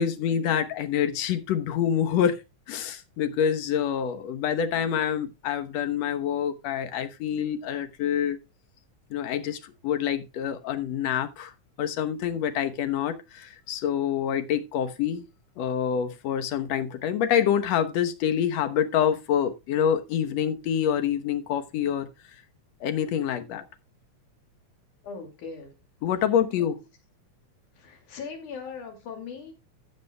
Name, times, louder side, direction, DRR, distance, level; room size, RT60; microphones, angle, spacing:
voice 1, 0.0-2.4 2.7-8.4 9.1-11.5 11.8-15.2 15.6-22.1 22.8-23.7 26.0-26.8, left 9 dB, 65° left, 2.1 m, -26 dB
voice 2, 25.0-25.7 27.8-29.5, left 5 dB, 85° left, 3.9 m, -39 dB
15.0 x 8.3 x 2.2 m
omnidirectional pair, 3.4 m